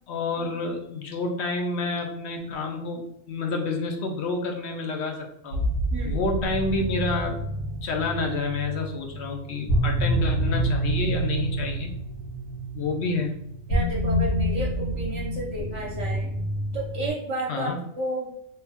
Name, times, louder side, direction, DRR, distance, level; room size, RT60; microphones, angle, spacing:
voice 1, 0.1-5.6 6.0-7.5 7.8-11.9 12.7-13.4 17.5-17.8, left 3 dB, 60° left, 2 dB, 0.9 m, -29 dB
sound 1, 5.5-17.1, right 1 dB, 85° left, 1.7 m, -28 dB
voice 2, 13.7-16.3 16.7-18.3, right 1 dB, 65° right, -4 dB, 1.1 m, -32 dB
3.6 x 2.3 x 4.1 m, 0.77 s
omnidirectional pair, 1.4 m